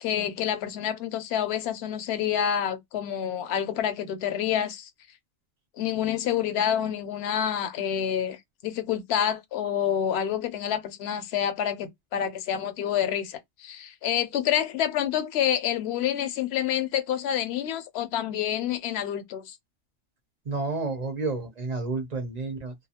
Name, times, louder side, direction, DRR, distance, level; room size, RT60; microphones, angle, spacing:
voice 1, 0.0-4.9 5.8-19.6, left 9 dB, 65° left, 0.8 m, -28 dB
voice 2, 20.4-22.7, right 3 dB, 45° right, 0.6 m, -30 dB
2.4 x 2.4 x 2.7 m
omnidirectional pair, 1.2 m